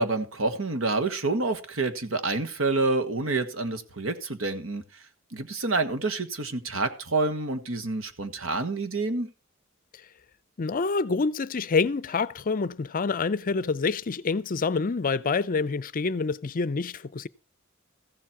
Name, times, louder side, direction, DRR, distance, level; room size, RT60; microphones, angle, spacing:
voice 1, 0.0-4.8 5.3-9.3, right 3 dB, 70° right, 1.5 m, -28 dB
voice 2, 10.6-17.3, left 4 dB, 40° left, 0.5 m, -27 dB
14.5 x 7.4 x 5.8 m
head